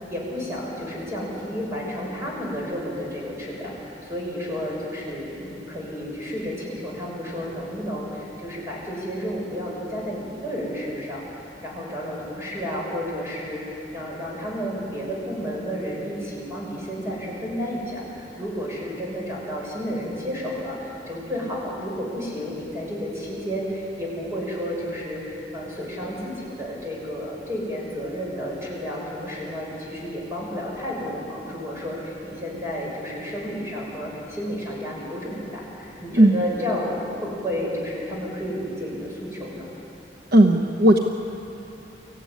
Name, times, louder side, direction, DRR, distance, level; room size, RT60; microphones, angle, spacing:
voice 1, 0.1-13.6 13.9-39.7, equal, 15° right, -4 dB, 6.9 m, -31 dB
voice 2, 40.3-41.0, right 1 dB, 60° right, 3 dB, 1.1 m, -15 dB
25.0 x 15.0 x 9.7 m, 2.8 s
head